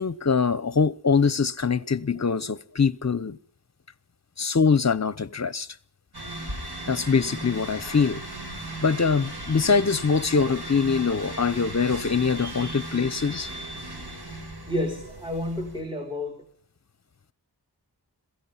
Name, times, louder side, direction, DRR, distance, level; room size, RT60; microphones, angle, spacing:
voice 1, 0.0-3.4 4.4-5.7 6.9-8.2 8.8-13.5, left 5 dB, 40° left, 0.9 m, -23 dB
sound 1, 6.1-15.8, right 1 dB, 70° right, 7.5 m, -37 dB
voice 2, 14.7-16.4, left 1 dB, 10° right, 3.5 m, -30 dB
22.0 x 16.0 x 9.8 m
wide cardioid pair, 50°, 40 cm